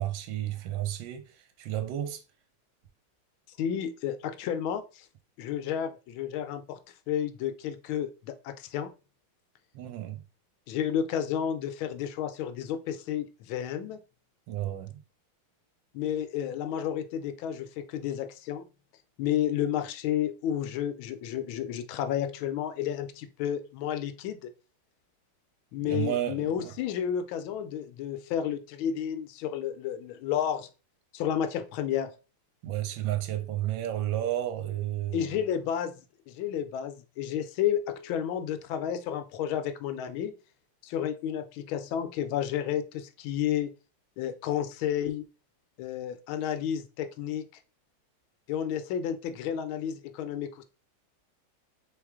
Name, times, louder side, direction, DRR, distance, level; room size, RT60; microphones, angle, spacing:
voice 1, 0.0-2.2 9.7-10.2 14.5-14.9 25.8-26.7 32.6-35.3, right 12 dB, 70° right, 1.3 m, -32 dB
voice 2, 3.6-5.1 5.4-6.8 7.1-8.9 10.7-14.0 15.9-18.6 19.2-24.5 25.7-30.7 31.1-32.1 35.1-35.9 36.3-40.3 40.8-43.7 44.2-45.2 45.8-47.4 48.5-50.6, left 9 dB, 75° left, 1.3 m, -31 dB
3.7 x 3.2 x 3.5 m
omnidirectional pair, 2.3 m